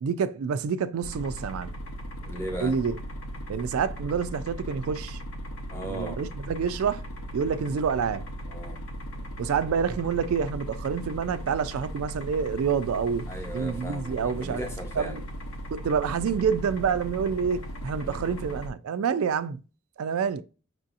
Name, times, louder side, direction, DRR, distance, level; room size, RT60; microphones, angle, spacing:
voice 1, 0.0-1.7 2.6-3.0 3.5-5.2 5.8-7.1 7.3-8.3 9.4-14.6 15.0-15.2 15.7-19.6 20.0-20.4, right 6 dB, 75° right, 0.3 m, -28 dB
sound 1, 1.0-18.7, equal, 75° left, 0.8 m, -37 dB
voice 2, 2.2-2.7 5.7-6.2 8.5-8.8 13.3-15.2 18.0-18.3, equal, 10° left, 0.8 m, -37 dB
6.1 x 2.7 x 2.5 m
head